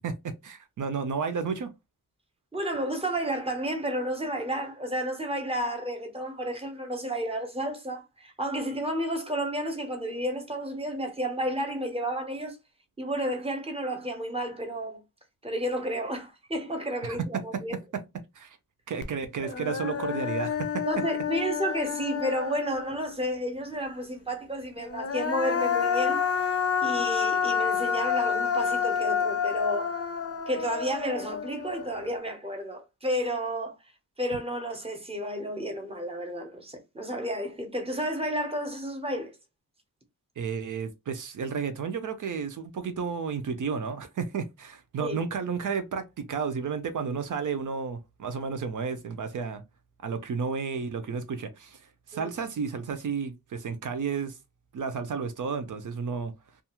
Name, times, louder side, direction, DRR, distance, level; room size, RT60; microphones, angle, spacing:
voice 1, 0.0-1.7 17.3-17.4 17.9-18.0 18.3-18.6 18.9-20.9 40.4-49.6 50.0-51.8 52.1-54.4 54.7-56.3, right 5 dB, 60° right, 0.6 m, -32 dB
voice 2, 2.5-12.6 13.0-15.0 15.4-17.7 19.4-19.5 20.9-26.2 26.8-30.0 30.5-33.8 34.2-39.3 45.0-45.2 52.1-52.3, equal, 15° right, 0.7 m, -31 dB
Human voice, 19.0-19.1 19.5-23.1 24.8-32.1, left 7 dB, 45° left, 0.6 m, -29 dB
2.4 x 2.3 x 2.9 m
wide cardioid pair, 120°, 35 cm